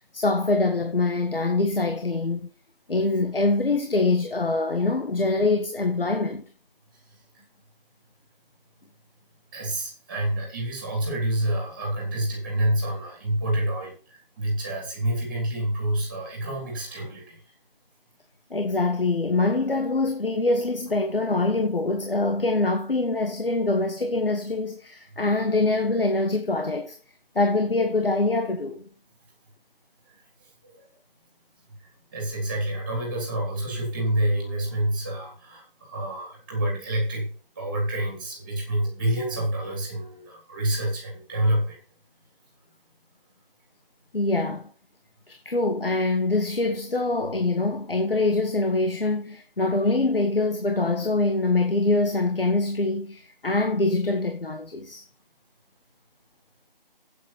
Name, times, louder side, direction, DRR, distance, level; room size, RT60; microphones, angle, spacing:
voice 1, 0.1-2.5 2.9-6.4 18.5-27.0 27.4-28.8 44.1-44.7 45.3-55.0, left 2 dB, 70° left, 1.7 m, -24 dB
voice 2, 9.5-17.5 30.1-30.2 30.4-30.8 32.1-37.3 37.5-41.8, right 1 dB, 10° right, 2.9 m, -28 dB
8.8 x 8.8 x 5.8 m
figure-of-eight pair, 175°, 29 cm